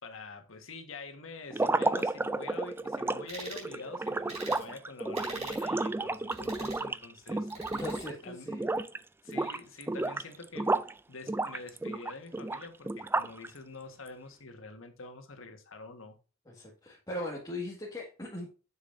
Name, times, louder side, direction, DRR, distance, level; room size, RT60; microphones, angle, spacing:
voice 1, 0.0-7.7 8.2-8.5 9.2-10.8 11.1-16.2, left 3 dB, 85° left, 1.5 m, -46 dB
sound 1, 1.5-8.2 8.5-9.0 9.3-10.9 11.3-13.5, right 2 dB, 10° right, 0.3 m, -32 dB
sound 2, 3.3-3.7 4.3-4.6 5.1-5.7 6.3-6.8 7.5-8.1, right 3 dB, 35° right, 3.8 m, -44 dB
voice 2, 7.7-8.7 16.5-18.5, left 1 dB, 20° left, 1.8 m, -39 dB
7.3 x 6.8 x 2.6 m
head